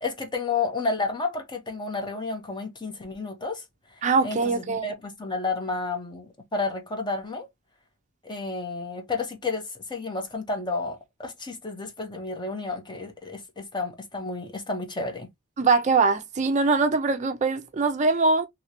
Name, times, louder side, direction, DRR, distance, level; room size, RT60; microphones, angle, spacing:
voice 1, 0.0-3.6 4.2-7.5 8.2-15.3, left 3 dB, 20° left, 0.9 m, -31 dB
voice 2, 4.0-4.9 15.6-18.5, right 4 dB, 35° right, 0.4 m, -22 dB
3.1 x 2.9 x 2.8 m
head